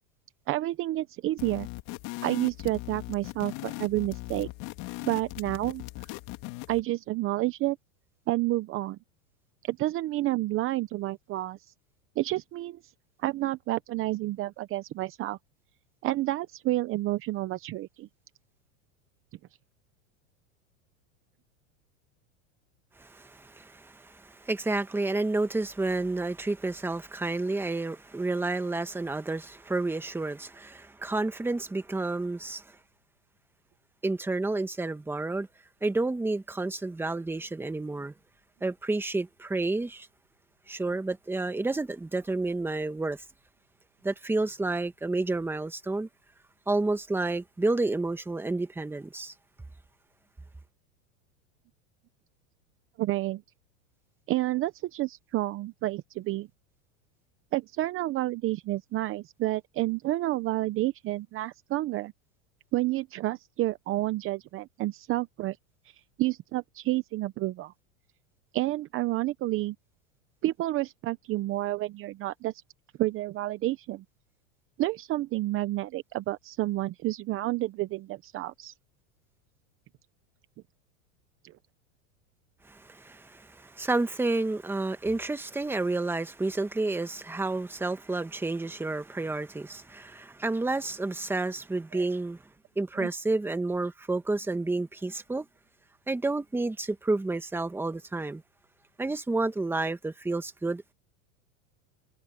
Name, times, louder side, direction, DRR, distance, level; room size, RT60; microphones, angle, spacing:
voice 1, 0.5-1.7 2.2-4.5 5.0-5.8 6.7-7.8 8.3-9.0 9.6-11.6 12.2-12.8 13.2-15.4 16.0-18.1 53.0-53.4 54.3-56.5 57.5-62.1 62.7-65.6 66.2-67.7 68.5-69.8 70.4-72.5 73.0-74.0 74.8-78.7 91.9-92.0 93.0-93.1, right 17 dB, 35° right, 0.8 m, -30 dB
sound 1, 1.4-6.8, left 22 dB, 50° left, 2.6 m, -39 dB
voice 2, 23.0-32.6 34.0-35.5 35.8-38.1 38.6-40.1 40.7-43.2 44.0-46.1 46.7-49.3 82.7-92.4 92.8-95.5 96.1-98.4 99.0-100.9, right 2 dB, 5° right, 1.4 m, -30 dB
supercardioid pair, 130°, 38 cm